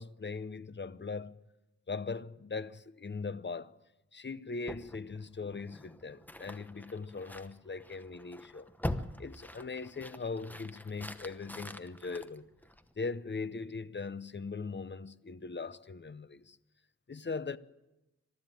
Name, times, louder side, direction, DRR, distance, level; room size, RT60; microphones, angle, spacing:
voice 1, 0.0-1.4 1.9-3.7 4.1-8.7 9.2-12.5 13.0-16.6 17.1-17.6, left 4 dB, 40° left, 0.7 m, -40 dB
sound 1, 4.6-13.1, left 1 dB, 5° left, 1.0 m, -44 dB
22.5 x 13.0 x 9.2 m
wide cardioid pair, 80°, 29 cm